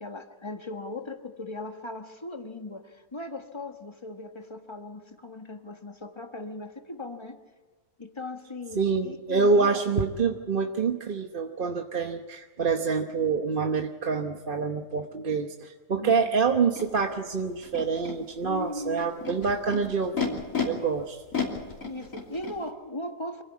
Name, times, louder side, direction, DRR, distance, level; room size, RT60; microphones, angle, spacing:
voice 1, 0.0-7.4 8.0-9.8 16.0-16.2 18.4-19.2 20.5-21.0 21.8-23.4, left 2 dB, 20° left, 5 dB, 1.6 m, -38 dB
voice 2, 8.8-21.2, right 5 dB, 40° right, 4 dB, 1.1 m, -26 dB
Animal, 16.8-16.9 17.6-18.1 19.0-20.6 21.3-22.6, left 6 dB, 70° left, 3.5 m, -32 dB
25.5 x 16.0 x 8.5 m, 1.3 s
omnidirectional pair, 1.5 m